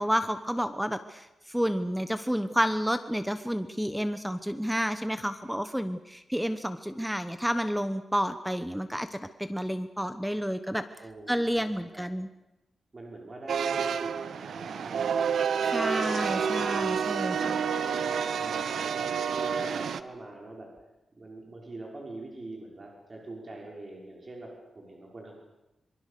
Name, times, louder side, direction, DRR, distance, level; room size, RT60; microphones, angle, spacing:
voice 1, 0.0-10.8 11.3-12.3 15.6-17.5, equal, ahead, 10 dB, 1.0 m, -30 dB
voice 2, 11.0-12.1 12.9-15.0 17.3-20.7 21.2-25.4, right 2 dB, 35° right, -1 dB, 5.6 m, -43 dB
sound 1, 13.5-20.0, right 7 dB, 85° right, 1.0 m, -29 dB
25.0 x 23.5 x 6.8 m, 0.97 s
wide cardioid pair, 120°, 0 cm